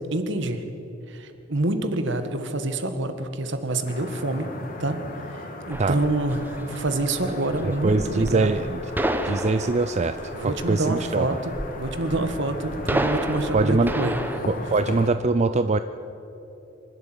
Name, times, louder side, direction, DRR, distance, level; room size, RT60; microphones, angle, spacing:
voice 1, 0.1-0.6 1.1-4.5 4.8-5.0 5.3-8.6 10.3-14.2 14.5-14.6, right 2 dB, 65° right, 8 dB, 1.7 m, -27 dB
sound 1, 3.8-15.1, left 2 dB, 45° left, 2.3 m, -38 dB
sound 2, 5.7-14.4, right 1 dB, 10° right, 1.1 m, -31 dB
voice 2, 7.6-8.8 9.2-10.2 10.4-11.3 13.5-13.9 14.5-15.8, right 3 dB, 35° right, 11 dB, 0.5 m, -23 dB
25.5 x 12.0 x 9.2 m, 3.0 s
head